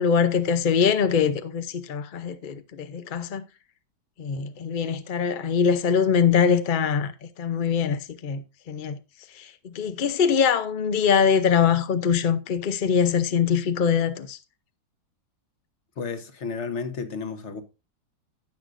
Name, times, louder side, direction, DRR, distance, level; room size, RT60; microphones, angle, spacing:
voice 1, 0.0-3.4 4.2-9.0 9.3-14.4, left 7 dB, 70° left, 0.4 m, -23 dB
voice 2, 16.0-17.6, left 5 dB, 45° left, 1.3 m, -32 dB
16.5 x 6.3 x 2.6 m
omnidirectional pair, 1.9 m